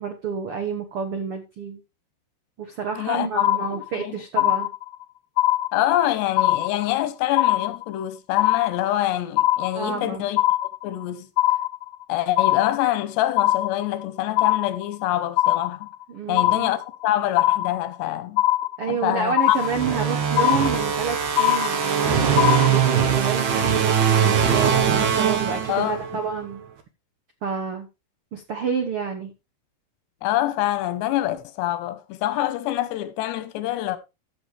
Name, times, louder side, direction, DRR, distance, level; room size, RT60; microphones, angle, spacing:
voice 1, 0.0-1.8 2.6-4.7 9.7-10.2 16.1-16.7 18.8-26.6 27.4-27.9 28.3-29.3, right 6 dB, 85° right, 1.2 m, -29 dB
voice 2, 2.9-4.5 5.7-10.4 10.8-11.3 12.1-15.9 16.3-18.5 18.9-19.6 19.9-20.0 25.7-26.0 30.2-34.0, left 14 dB, 90° left, 3.1 m, -26 dB
sound 1, 3.4-4.0 4.4-5.0 5.4-6.0 6.4-7.0 7.4-8.0 8.4-9.0 9.4-10.0 10.4-11.0 11.4-12.0 12.4-13.0 13.4-14.0 14.4-15.0 15.4-16.0 16.4-17.0 17.4-18.0 18.4-19.0 19.4-20.0 20.4-21.0 21.4-22.0 22.4-23.0, left 15 dB, 70° left, 2.0 m, -22 dB
sound 2, 19.5-26.2, right 7 dB, 60° right, 2.2 m, -21 dB
14.5 x 6.9 x 3.3 m
omnidirectional pair, 4.8 m